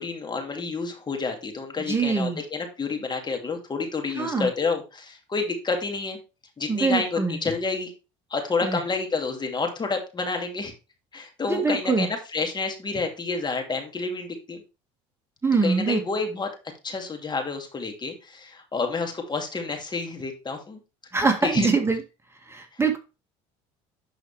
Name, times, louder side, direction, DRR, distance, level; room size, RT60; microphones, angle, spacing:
voice 1, 0.0-6.2 6.6-7.9 8.3-10.7 11.1-14.6 15.6-16.5 16.8-20.8 21.4-21.7, left 4 dB, 30° left, 4 dB, 2.7 m, -29 dB
voice 2, 1.9-2.4 4.1-4.5 6.7-7.4 8.6-8.8 11.5-12.1 15.4-16.0 21.1-22.0 22.5-23.0, right 4 dB, 15° right, 4 dB, 1.9 m, -23 dB
11.5 x 4.9 x 3.4 m, 0.29 s
supercardioid pair, 80°, 16 cm